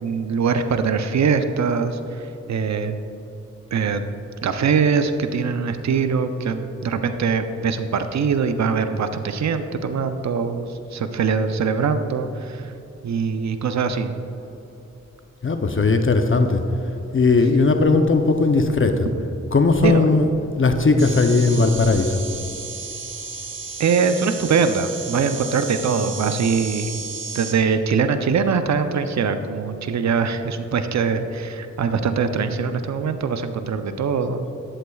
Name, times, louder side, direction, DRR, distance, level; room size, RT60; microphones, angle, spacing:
voice 1, 0.0-3.0 3.7-4.0 4.4-12.7 13.0-14.1 19.8-20.0 23.8-27.0 27.3-34.5, right 5 dB, 60° right, 8 dB, 0.6 m, -22 dB
voice 2, 15.4-16.6 17.1-19.1 19.5-22.2, left 3 dB, 40° left, 6 dB, 0.6 m, -18 dB
sound 1, 21.0-27.5, right 4 dB, 40° right, 1.0 m, -33 dB
11.0 x 7.8 x 2.3 m, 2.9 s
cardioid pair, 45°, 31 cm